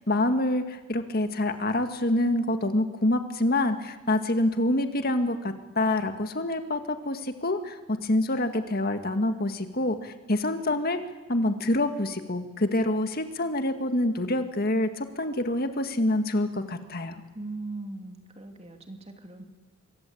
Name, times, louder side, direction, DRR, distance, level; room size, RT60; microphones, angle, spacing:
voice 1, 0.1-11.0 11.3-17.2, left 1 dB, 45° left, 7 dB, 1.9 m, -26 dB
voice 2, 17.3-19.4, right 2 dB, 30° right, 5 dB, 2.7 m, -39 dB
26.0 x 23.5 x 8.6 m, 1.2 s
head